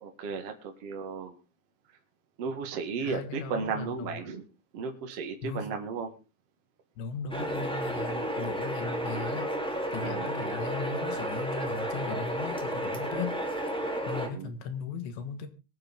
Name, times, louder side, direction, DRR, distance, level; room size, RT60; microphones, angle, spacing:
voice 1, 0.0-1.4 2.4-4.4 4.7-6.1 10.0-10.3 14.2-14.5, right 5 dB, 50° right, 4 dB, 2.1 m, -35 dB
voice 2, 3.0-4.2 5.4-5.7 7.0-9.5 9.9-13.4 14.1-15.5, left 5 dB, 85° left, 9 dB, 3.9 m, -37 dB
sound 1, 7.3-14.3, right 1 dB, ahead, 1.9 m, -32 dB
22.5 x 9.0 x 3.6 m, 0.31 s
omnidirectional pair, 4.9 m